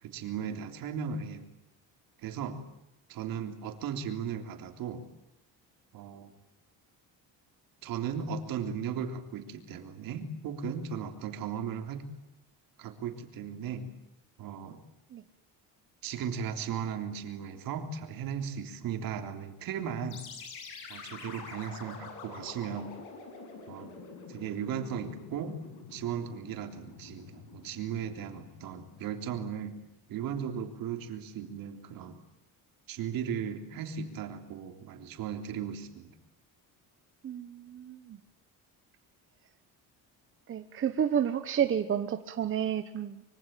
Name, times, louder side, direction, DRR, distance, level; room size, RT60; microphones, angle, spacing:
voice 1, 0.0-1.5 2.2-2.6 3.1-5.1 5.9-6.3 7.8-12.1 12.8-13.9 14.4-14.8 16.0-20.2 20.9-23.0 23.7-23.9 24.3-25.6 25.9-29.8 30.1-32.2 32.9-36.1, right 7 dB, 65° right, 7 dB, 3.5 m, -36 dB
sound 1, 20.1-29.7, left 5 dB, 90° left, 7.6 m, -47 dB
voice 2, 37.2-38.2 40.5-43.2, right 8 dB, 35° right, 9 dB, 1.1 m, -30 dB
25.5 x 24.0 x 9.1 m, 0.84 s
cardioid pair, 160°, 37 cm